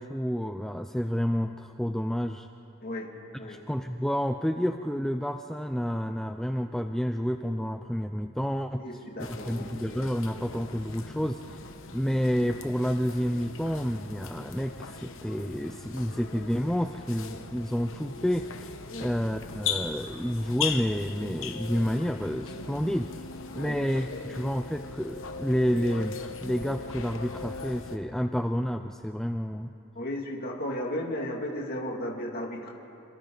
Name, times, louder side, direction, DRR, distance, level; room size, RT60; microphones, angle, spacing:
voice 1, 0.0-2.5 3.4-9.0 9.3-11.4 11.9-18.7 19.0-29.7, equal, ahead, 6 dB, 0.4 m, -29 dB
voice 2, 8.7-9.7 18.9-19.1 23.5-23.7 30.0-32.7, left 1 dB, 45° left, -1 dB, 2.3 m, -34 dB
sound 1, 9.2-28.0, left 5 dB, 60° left, 1.2 m, -39 dB
28.0 x 24.5 x 3.9 m, 3.0 s
head